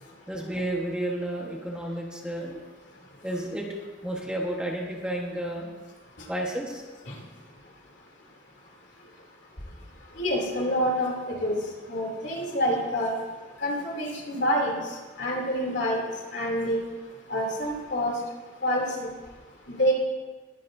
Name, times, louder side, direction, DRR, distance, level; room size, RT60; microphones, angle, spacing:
voice 1, 0.3-2.6 3.2-3.7 4.0-5.7 6.3-6.8, right 1 dB, 5° right, -2 dB, 1.3 m, -31 dB
voice 2, 10.2-11.6 11.9-13.1 13.6-14.8 15.2-16.0 16.3-16.8 17.3-18.2 18.6-19.1 19.7-19.9, equal, 65° left, -2 dB, 3.0 m, -27 dB
20.5 x 9.5 x 2.7 m, 1.3 s
head